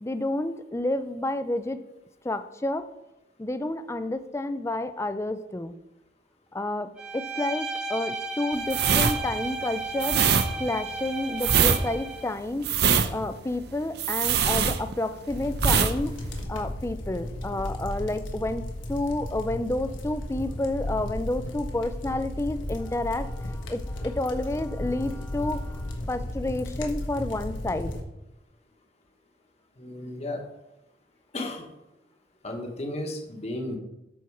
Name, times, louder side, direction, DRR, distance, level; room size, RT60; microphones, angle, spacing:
voice 1, 0.0-1.8 2.2-2.9 3.4-5.7 6.5-10.2 10.6-12.7 13.1-16.2 16.5-27.9, left 2 dB, 15° left, 11 dB, 0.4 m, -30 dB
Bowed string instrument, 7.0-12.3, right 3 dB, 5° right, 1.1 m, -34 dB
sound 1, 8.7-15.2 15.5-15.9 16.2-16.4, right 7 dB, 55° right, 0.6 m, -23 dB
sound 2, 15.2-28.0, left 1 dB, 85° left, 1.4 m, -35 dB
voice 2, 29.8-30.4 31.3-31.7 32.4-33.8, left 1 dB, 35° left, 2 dB, 1.2 m, -34 dB
12.5 x 4.6 x 4.7 m, 0.93 s
head